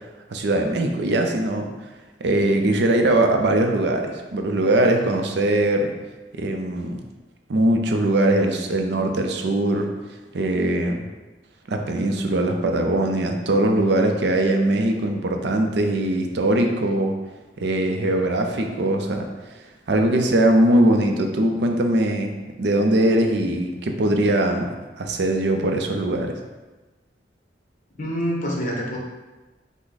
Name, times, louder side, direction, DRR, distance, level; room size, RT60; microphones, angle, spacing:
voice 1, 0.3-1.7 2.2-5.9 6.3-7.0 7.5-9.9 10.3-11.0 11.7-17.1 17.6-19.3 19.9-24.7 25.0-26.3, right 1 dB, 65° right, 4 dB, 0.5 m, -21 dB
voice 2, 28.0-29.0, equal, 45° left, -2 dB, 0.9 m, -26 dB
5.9 x 2.1 x 3.9 m, 1.2 s
head